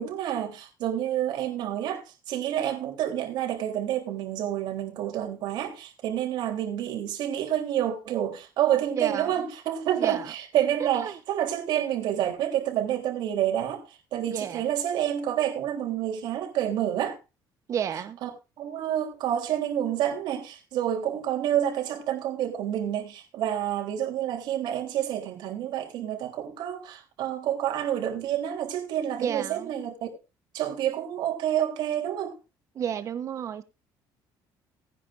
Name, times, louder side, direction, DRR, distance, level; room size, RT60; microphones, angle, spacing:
voice 1, 0.0-17.2 18.2-18.3 18.6-30.1 30.5-32.4, right 11 dB, 65° right, 3.4 m, -28 dB
voice 2, 2.5-3.0 8.9-9.4 10.0-10.3 10.9-11.2 14.3-14.7 17.7-18.2 29.2-29.7 32.7-33.6, right 8 dB, 40° right, 1.0 m, -32 dB
18.0 x 10.0 x 2.6 m
cardioid pair, 160°, 8 cm